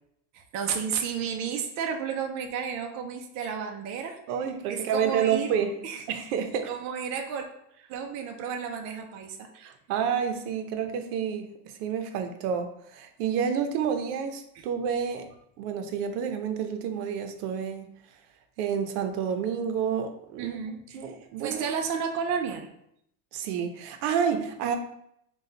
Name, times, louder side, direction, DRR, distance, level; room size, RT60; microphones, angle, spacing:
voice 1, 0.3-4.2 4.7-5.6 5.8-6.0 6.7-7.5 7.9-9.5 20.4-21.0 21.4-22.7, right 7 dB, 40° right, 3 dB, 0.5 m, -32 dB
voice 2, 4.3-5.8 6.1-6.7 9.5-15.3 15.6-17.9 18.6-20.6 20.9-21.7 23.3-24.8, right 7 dB, 90° right, 7 dB, 0.7 m, -29 dB
4.2 x 2.3 x 3.8 m, 0.75 s
cardioid pair, 155°, 44 cm